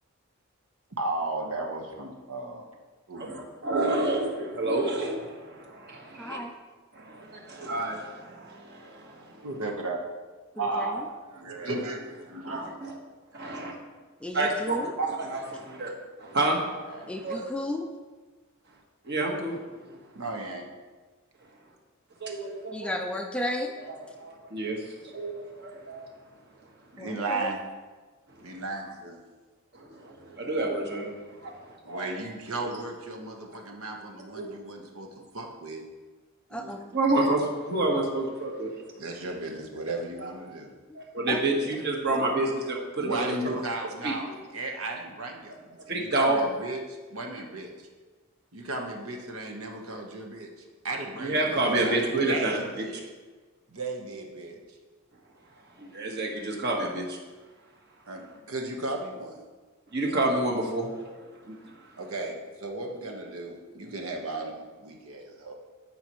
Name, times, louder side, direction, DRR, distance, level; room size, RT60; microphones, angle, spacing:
voice 1, 1.0-2.6 3.1-3.3 9.4-10.0 10.6-12.8 16.9-17.4 20.1-20.7 26.9-27.6 28.4-29.2 31.8-35.1 35.3-35.8 39.0-40.7 41.6-41.7 42.9-47.9 48.5-50.5 50.8-53.1 53.7-54.6 58.1-59.4 62.0-65.5, right 2 dB, 70° right, 1 dB, 1.1 m, -35 dB
voice 2, 3.2-6.4 6.9-9.4 11.5-11.6 12.4-13.0 13.3-13.7 14.3-15.9 16.2-17.4 19.1-19.6 22.2-22.9 23.8-26.0 29.7-31.1 31.4-32.1 34.3-34.5 36.9-38.7 40.2-40.3 40.9-43.4 43.8-44.3 45.9-46.4 51.2-52.5 55.8-57.2 59.9-61.1 61.4-61.7, right 2 dB, 50° right, 0 dB, 1.4 m, -29 dB
voice 3, 6.2-6.5 10.6-11.0 14.2-14.9 17.1-17.9 22.7-23.7 27.0-27.5 36.5-36.8 40.9-41.0 41.3-41.4, left 1 dB, 5° left, 3 dB, 0.4 m, -33 dB
13.0 x 5.5 x 3.1 m, 1.3 s
head